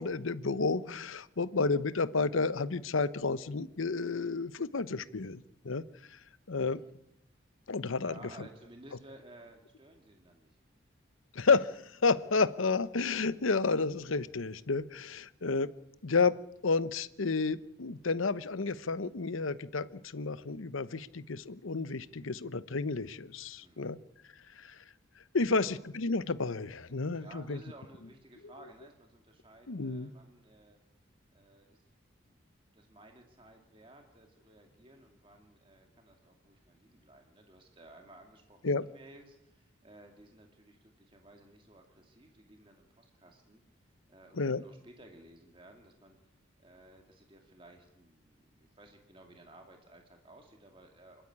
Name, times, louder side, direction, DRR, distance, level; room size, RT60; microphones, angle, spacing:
voice 1, 0.0-5.8 6.1-6.2 6.5-6.8 7.7-8.1 11.3-15.7 16.0-24.0 24.6-24.8 25.3-27.6 29.7-30.1 38.6-38.8 44.3-44.6, left 4 dB, 80° left, 15 dB, 0.9 m, -31 dB
voice 2, 6.6-6.9 8.0-10.6 23.6-24.0 25.4-25.8 27.1-30.8 31.3-31.8 32.2-32.4 32.7-46.2 46.6-51.2, right 1 dB, 25° right, 3 dB, 2.3 m, -56 dB
26.0 x 13.0 x 9.9 m, 0.82 s
head